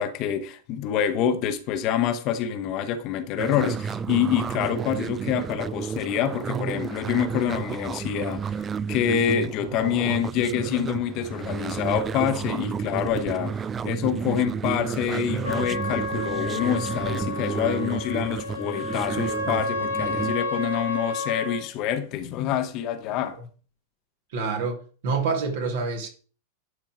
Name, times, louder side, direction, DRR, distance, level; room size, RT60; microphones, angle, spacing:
voice 1, 0.0-23.4, left 9 dB, 40° left, 1.2 m, -26 dB
sound 1, 3.4-20.3, right 6 dB, 20° right, 0.4 m, -31 dB
Trumpet, 15.4-21.6, left 2 dB, 85° left, 1.7 m, -31 dB
voice 2, 24.3-26.1, right 4 dB, 55° right, 2.4 m, -27 dB
11.0 x 4.6 x 6.3 m
figure-of-eight pair, 90°, 0 cm